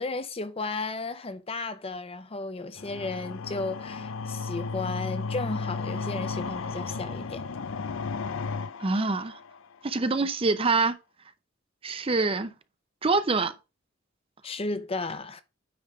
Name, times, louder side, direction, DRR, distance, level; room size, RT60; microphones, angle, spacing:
voice 1, 0.0-7.5 14.4-15.4, left 3 dB, 30° left, 0.7 m, -34 dB
sound 1, 2.8-9.8, left 4 dB, 80° left, 0.5 m, -34 dB
voice 2, 8.8-9.4 9.8-11.0 11.8-12.5 13.0-13.5, right 3 dB, 30° right, 0.6 m, -25 dB
9.4 x 3.4 x 4.8 m
head